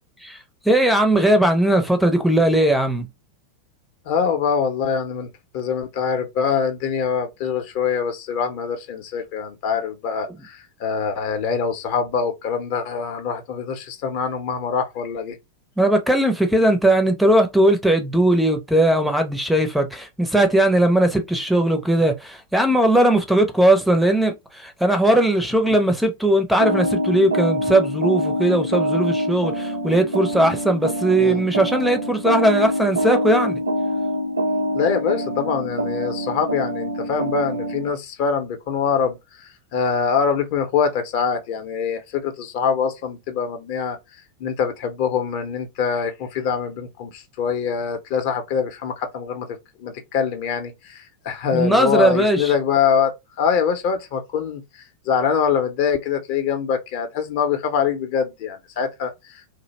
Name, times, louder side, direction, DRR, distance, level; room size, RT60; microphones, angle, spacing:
voice 1, 0.7-3.1 15.8-33.6 51.5-52.5, right 1 dB, ahead, 0.5 m, -18 dB
voice 2, 4.1-5.3 5.5-15.4 31.2-31.4 34.7-44.0 44.4-49.5 49.8-59.5, left 6 dB, 45° left, 0.6 m, -24 dB
sound 1, 26.6-37.9, equal, 70° right, 0.6 m, -25 dB
2.5 x 2.0 x 3.0 m
figure-of-eight pair, 90°, 0 cm